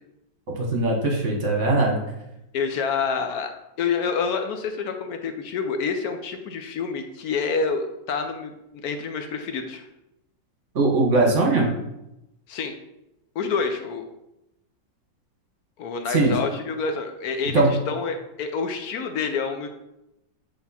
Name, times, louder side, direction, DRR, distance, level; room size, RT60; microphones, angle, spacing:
voice 1, 0.6-2.0 10.7-11.7 16.1-16.3 17.5-17.7, right 3 dB, 45° right, 0 dB, 1.3 m, -20 dB
voice 2, 2.5-3.5 3.8-9.9 12.5-12.7 13.4-14.0 15.8-19.7, left 5 dB, 70° left, 6 dB, 0.9 m, -28 dB
7.8 x 3.5 x 4.1 m, 0.89 s
omnidirectional pair, 2.0 m